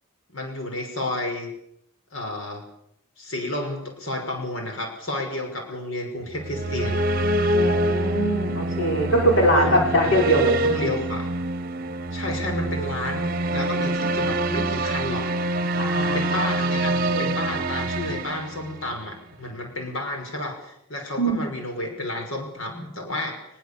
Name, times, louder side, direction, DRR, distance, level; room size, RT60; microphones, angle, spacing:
voice 1, 0.3-1.5 2.1-2.7 3.2-7.0 9.5-11.3 12.1-15.3 15.9-23.5, left 1 dB, 80° left, 3 dB, 5.9 m, -31 dB
sound 1, 6.3-19.1, right 2 dB, 45° right, 0.9 m, -25 dB
voice 2, 7.5-10.9 15.8-16.5 17.1-17.3 21.2-21.5, equal, 65° left, 0 dB, 5.8 m, -22 dB
22.0 x 22.0 x 7.1 m, 0.77 s
head